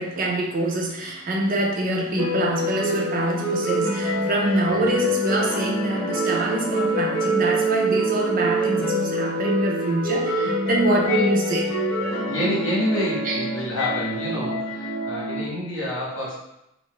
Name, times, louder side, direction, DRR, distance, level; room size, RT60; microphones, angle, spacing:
voice 1, 0.0-11.7 13.3-13.4, right 1 dB, 45° right, -1 dB, 0.5 m, -25 dB
sound 1, 2.2-15.4, right 1 dB, 15° left, 1.1 m, -25 dB
voice 2, 12.3-16.4, left 1 dB, 65° left, -5 dB, 1.1 m, -27 dB
2.6 x 2.5 x 3.8 m, 0.84 s
head